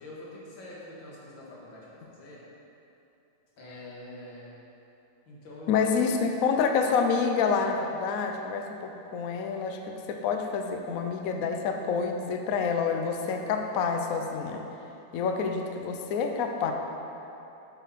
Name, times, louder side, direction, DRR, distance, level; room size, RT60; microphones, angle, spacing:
voice 1, 0.0-2.4 3.6-4.5 5.3-6.3, left 2 dB, 85° left, -5 dB, 2.5 m, -44 dB
voice 2, 5.7-14.6 15.1-16.7, left 5 dB, 65° left, 4 dB, 0.9 m, -28 dB
8.2 x 8.0 x 4.2 m, 2.9 s
omnidirectional pair, 2.0 m